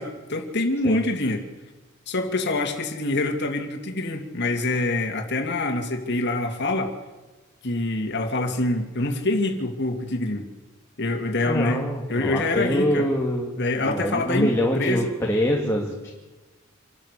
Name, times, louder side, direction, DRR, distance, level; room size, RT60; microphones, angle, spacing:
voice 1, 0.0-1.5 2.1-6.9 7.6-10.5 11.0-13.1 13.6-15.1, left 2 dB, 55° left, 4 dB, 2.7 m, -25 dB
voice 2, 11.5-13.5 13.8-16.1, equal, 10° left, -1 dB, 2.2 m, -24 dB
27.0 x 12.5 x 8.4 m, 1.2 s
head